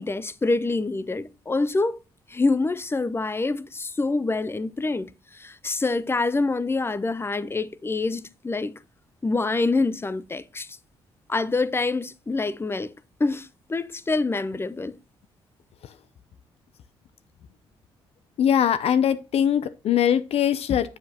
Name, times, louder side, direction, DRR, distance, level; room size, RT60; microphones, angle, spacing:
voice 1, 0.0-2.0 2.3-8.8 9.2-10.8 11.3-12.9 13.2-15.0, left 3 dB, 20° left, 0.6 m, -26 dB
voice 2, 18.4-21.0, left 9 dB, 65° left, 0.5 m, -22 dB
7.5 x 7.4 x 2.8 m
supercardioid pair, 55°, 11 cm